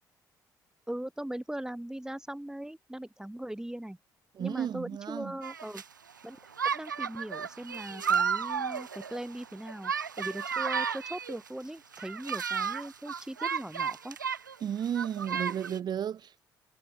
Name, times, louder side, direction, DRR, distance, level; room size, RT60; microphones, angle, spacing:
voice 1, 0.9-4.0 4.4-5.8 6.2-6.4 6.7-14.2, right 1 dB, 5° right, 4.4 m, -39 dB
voice 2, 4.4-5.3 14.6-16.4, right 9 dB, 45° right, 0.8 m, -33 dB
sound 1, 5.4-5.8 6.5-11.5 11.9-14.5 14.8-15.8, right 6 dB, 85° right, 0.5 m, -33 dB
figure-of-eight pair, 45°, 10 cm